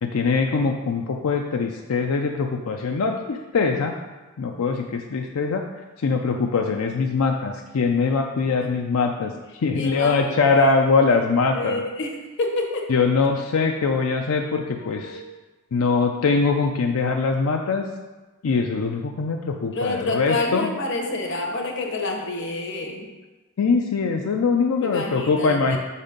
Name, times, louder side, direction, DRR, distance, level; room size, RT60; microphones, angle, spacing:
voice 1, 0.0-3.9 4.4-5.6 6.0-9.3 9.6-11.8 12.9-15.2 15.7-17.8 18.4-20.7 23.6-25.8, left 4 dB, 90° left, 3 dB, 0.5 m, -22 dB
voice 2, 9.7-10.8 11.5-12.9 15.0-15.2 19.7-23.1 24.8-25.8, left 2 dB, 60° left, 2 dB, 1.0 m, -28 dB
6.0 x 4.1 x 5.1 m, 1.2 s
head